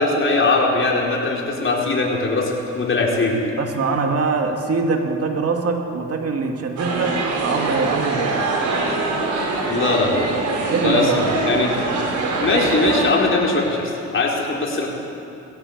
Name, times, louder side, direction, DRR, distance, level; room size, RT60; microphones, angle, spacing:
voice 1, 0.0-3.4 9.7-10.3 10.8-11.7 12.4-14.9, left 3 dB, 40° left, -1 dB, 4.5 m, -20 dB
voice 2, 3.6-8.4 10.7-11.3, right 4 dB, 50° right, 3 dB, 2.5 m, -23 dB
sound 1, 6.8-13.1, right 3 dB, 75° right, 4.8 m, -23 dB
20.0 x 16.5 x 8.2 m, 2.9 s
cardioid pair, 90°, 30 cm